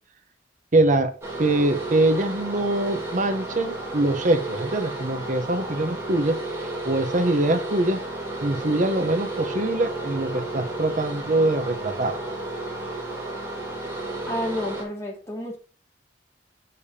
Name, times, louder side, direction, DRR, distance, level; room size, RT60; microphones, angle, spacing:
voice 1, 0.7-1.1 1.4-6.4 6.9-8.0 8.4-12.2, right 2 dB, 45° right, 9 dB, 0.8 m, -23 dB
sound 1, 1.2-14.8, right 2 dB, 15° right, 2.9 m, -32 dB
voice 2, 14.3-15.6, equal, 15° left, -2 dB, 2.2 m, -30 dB
7.1 x 6.7 x 2.8 m, 0.38 s
head